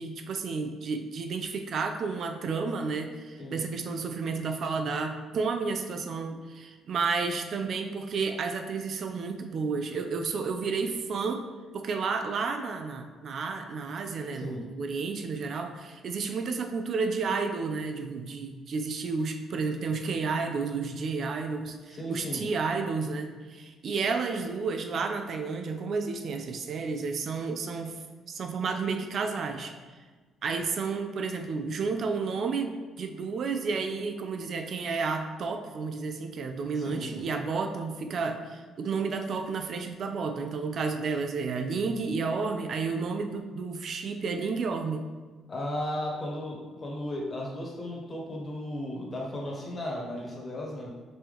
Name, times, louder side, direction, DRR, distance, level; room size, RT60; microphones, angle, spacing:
voice 1, 0.0-11.5 11.7-28.0 28.3-29.7 30.4-45.0, right 4 dB, 55° right, 6 dB, 0.4 m, -31 dB
voice 2, 21.9-22.5 36.7-37.3 45.5-50.9, left 1 dB, 30° left, -2 dB, 1.1 m, -35 dB
5.2 x 2.9 x 3.5 m, 1.3 s
cardioid pair, 105°, 0 cm